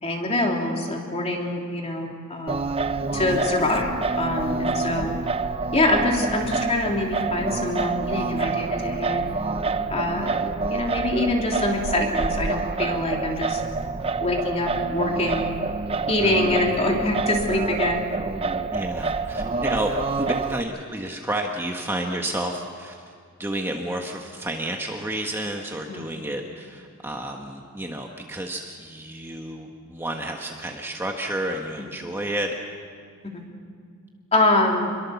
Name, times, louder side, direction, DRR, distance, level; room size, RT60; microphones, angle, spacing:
voice 1, 0.0-2.6 3.1-5.1 5.7-9.3 9.9-10.3 10.7-13.6 14.2-15.5 16.1-18.0 25.9-26.0 33.2-33.4 34.3-34.9, left 2 dB, 30° left, 0 dB, 3.2 m, -24 dB
Singing, 2.5-20.6, right 3 dB, 25° right, 0.7 m, -27 dB
voice 2, 3.1-3.4 5.0-5.1 16.2-16.6 18.7-19.9 20.2-23.1 23.4-32.5, right 1 dB, 10° right, 1 dB, 1.4 m, -31 dB
27.0 x 22.5 x 7.1 m, 2.2 s
head